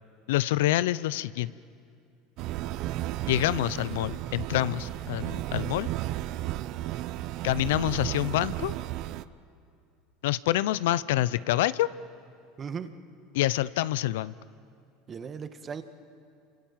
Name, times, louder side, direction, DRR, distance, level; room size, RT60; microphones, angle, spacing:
voice 1, 0.3-1.5 3.3-5.9 7.4-8.7 10.2-11.9 13.3-14.3, left 15 dB, 80° left, 18 dB, 0.6 m, -26 dB
sound 1, 2.4-9.2, right 15 dB, 60° right, 0.7 m, -34 dB
voice 2, 12.6-12.9 15.1-15.8, right 6 dB, 35° right, 9 dB, 1.7 m, -37 dB
28.5 x 25.5 x 7.4 m, 2.4 s
supercardioid pair, 95°, 0 cm